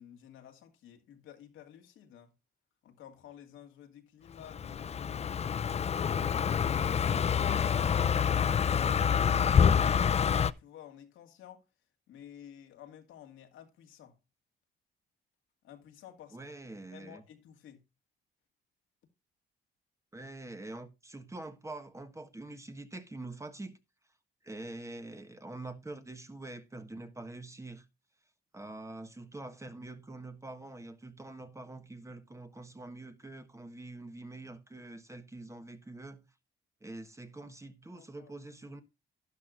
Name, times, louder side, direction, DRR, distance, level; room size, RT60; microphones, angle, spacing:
voice 1, 0.0-2.3 2.8-5.8 6.3-11.6 12.1-14.2 15.6-16.6 16.9-17.8 37.9-38.4, left 10 dB, 85° left, 2.1 m, -53 dB
Car passing by, 4.5-10.5, left 7 dB, 35° left, 0.5 m, -27 dB
voice 2, 16.3-17.2 20.1-23.7 24.4-27.8 28.5-36.2 36.8-38.8, right 2 dB, 15° right, 1.4 m, -45 dB
12.0 x 10.5 x 2.5 m
cardioid pair, 90°, 20 cm